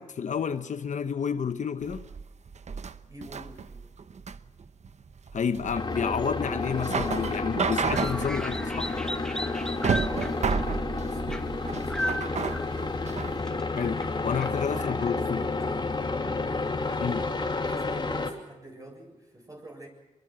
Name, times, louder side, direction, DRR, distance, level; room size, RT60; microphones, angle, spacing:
voice 1, 0.0-2.1 5.3-8.9 13.7-15.4 17.0-17.2, left 6 dB, 75° left, 0.9 m, -30 dB
sound 1, 1.8-13.4, right 5 dB, 60° right, 0.9 m, -32 dB
voice 2, 3.0-3.9 7.9-8.9 9.7-12.7 14.3-15.3 15.6-16.0 16.7-19.9, right 1 dB, 25° right, 7.4 m, -48 dB
sound 2, 5.7-18.3, left 3 dB, 35° left, 2.8 m, -31 dB
sound 3, 7.9-14.6, left 1 dB, 5° left, 1.2 m, -37 dB
24.5 x 23.5 x 6.3 m
wide cardioid pair, 105°, 13 cm